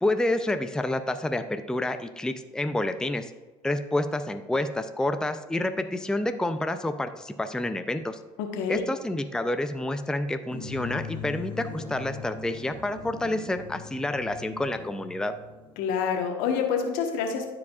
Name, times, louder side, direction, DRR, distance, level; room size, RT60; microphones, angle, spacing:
voice 1, 0.0-3.3 3.6-8.2 8.7-15.3, left 1 dB, 5° left, 8 dB, 0.5 m, -29 dB
voice 2, 8.4-8.8 15.8-17.5, left 6 dB, 75° left, 3 dB, 1.3 m, -27 dB
sound 1, 10.5-15.9, left 5 dB, 30° left, 1.8 m, -40 dB
12.5 x 4.8 x 2.4 m, 1.2 s
hypercardioid pair, 70°, 15 cm